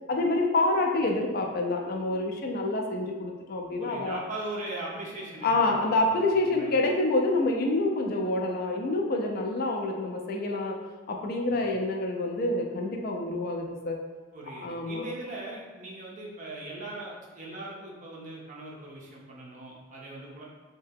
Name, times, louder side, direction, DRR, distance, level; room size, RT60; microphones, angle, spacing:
voice 1, 0.1-4.2 5.4-10.8 11.1-14.0 14.5-15.1, left 2 dB, 50° left, 1 dB, 0.3 m, -27 dB
voice 2, 3.8-6.7 11.5-11.6 14.3-20.4, right 2 dB, 40° right, -3 dB, 0.5 m, -40 dB
2.7 x 2.2 x 3.4 m, 1.4 s
head